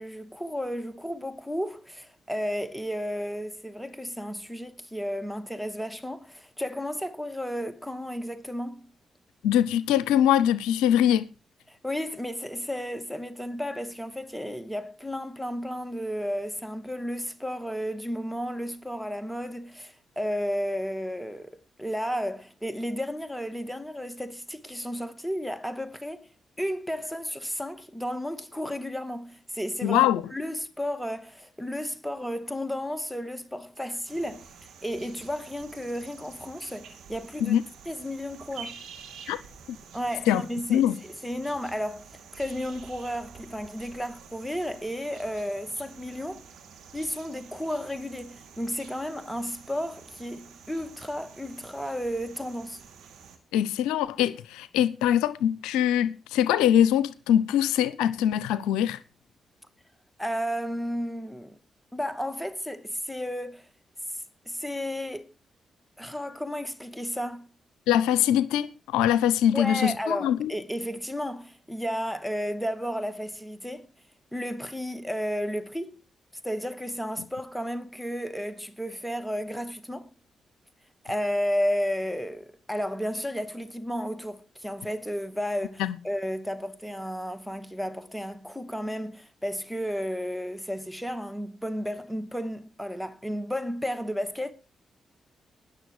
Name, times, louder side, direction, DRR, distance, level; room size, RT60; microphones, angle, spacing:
voice 1, 0.0-8.9 11.7-26.3 26.6-34.5 34.8-37.6 37.9-38.8 39.9-40.9 41.2-42.0 42.3-46.4 46.9-52.8 60.2-61.6 61.9-63.7 64.5-65.3 66.0-67.5 69.5-73.9 74.3-76.0 76.4-80.1 81.0-94.5, equal, ahead, 2.3 m, -33 dB
voice 2, 9.4-11.3 29.8-30.2 37.4-37.6 39.3-39.4 40.3-40.4 40.7-41.0 53.5-59.0 67.9-70.5 85.8-85.9, left 10 dB, 90° left, 0.6 m, -23 dB
sound 1, 34.1-53.4, right 6 dB, 85° right, 2.6 m, -49 dB
20.0 x 6.7 x 4.9 m
supercardioid pair, 45°, 0 cm